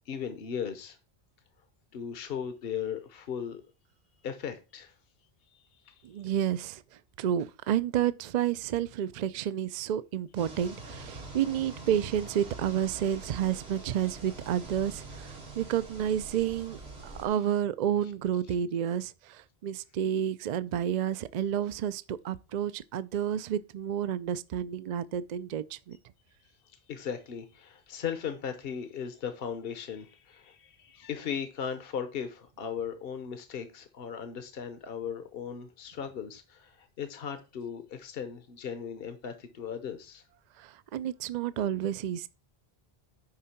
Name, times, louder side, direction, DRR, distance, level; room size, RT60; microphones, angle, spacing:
voice 1, 0.1-1.0 1.9-3.6 4.2-4.9 5.9-6.0 26.9-40.2, left 7 dB, 65° left, 1.1 m, -37 dB
voice 2, 6.0-6.8 7.2-26.0 40.6-42.3, right 10 dB, 55° right, 0.5 m, -30 dB
sound 1, 10.3-17.3, right 2 dB, 85° right, 2.4 m, -45 dB
9.7 x 3.7 x 5.7 m
omnidirectional pair, 1.1 m